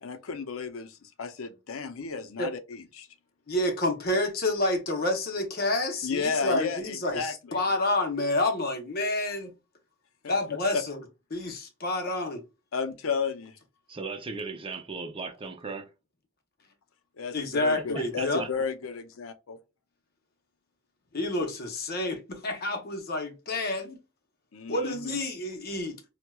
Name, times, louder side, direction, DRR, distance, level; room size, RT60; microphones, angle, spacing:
voice 1, 0.0-3.1 6.0-7.6 10.2-10.3 10.7-10.8 12.7-13.6 17.2-19.6 24.5-25.2, left 5 dB, 85° left, 0.6 m, -33 dB
voice 2, 3.5-9.5 10.3-11.0 11.3-12.4 17.3-18.4 21.1-24.0 24.7-26.0, left 2 dB, 50° left, 0.8 m, -29 dB
voice 3, 13.9-15.9 17.7-18.5, right 4 dB, 25° right, 0.6 m, -37 dB
4.4 x 2.2 x 2.2 m
head